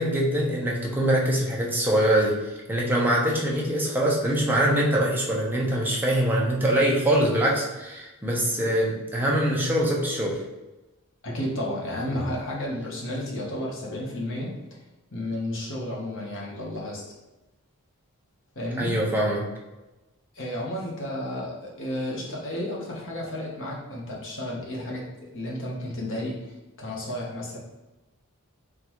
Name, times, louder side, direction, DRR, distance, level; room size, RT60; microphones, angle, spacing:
voice 1, 0.0-10.4 18.8-19.4, right 1 dB, 10° right, -3 dB, 0.8 m, -23 dB
voice 2, 11.2-14.5 15.1-17.0 18.5-18.9 20.3-27.6, left 1 dB, 60° left, -3 dB, 1.1 m, -32 dB
3.7 x 3.3 x 3.0 m, 1.1 s
head